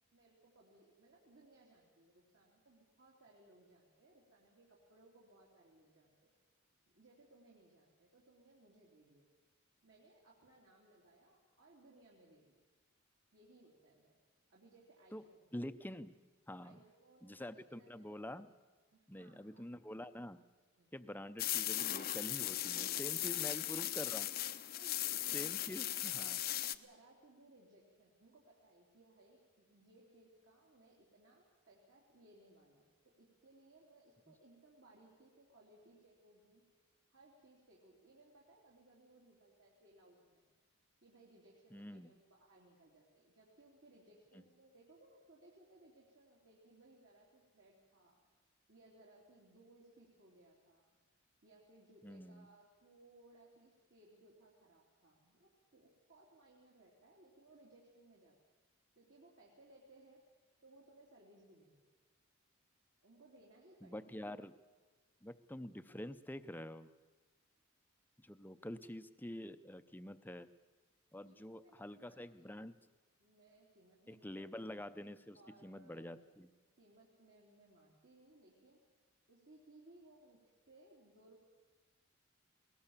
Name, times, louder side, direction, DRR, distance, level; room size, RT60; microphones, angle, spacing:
voice 1, 0.1-6.3 6.9-9.2 9.8-12.6 13.3-14.1 14.5-15.5 16.6-18.1 18.9-19.6 20.8-20.9 23.2-23.6 24.6-26.3 26.7-36.6 37.1-40.4 41.0-48.2 48.7-50.9 51.4-58.3 58.9-60.2 60.6-61.8 63.0-64.2 71.2-72.6 73.2-74.6 75.3-76.1 76.8-78.8 79.3-81.4, right 2 dB, 65° right, -4 dB, 3.3 m, -64 dB
voice 2, 15.5-16.1 16.5-16.8 17.2-18.5 19.1-20.4 20.9-24.3 25.3-26.4 41.7-42.1 52.0-52.5 63.8-64.6 65.2-66.9 68.2-70.5 71.1-72.8 74.1-76.5, left 1 dB, 10° left, 12 dB, 0.6 m, -47 dB
sound 1, 21.4-26.8, left 13 dB, 45° left, 0.7 m, -38 dB
20.5 x 19.0 x 7.3 m, 1.4 s
head